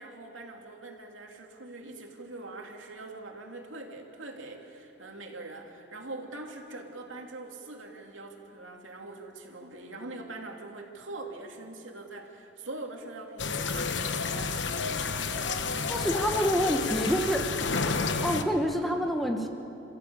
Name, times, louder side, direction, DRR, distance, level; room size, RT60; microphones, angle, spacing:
voice 1, 0.0-14.1, right 2 dB, 85° right, 2 dB, 2.7 m, -43 dB
sound 1, 13.4-18.4, left 4 dB, 70° left, 1.1 m, -30 dB
voice 2, 15.9-17.5 18.2-19.5, equal, ahead, 3 dB, 1.1 m, -27 dB
29.0 x 15.0 x 8.6 m, 3.0 s
head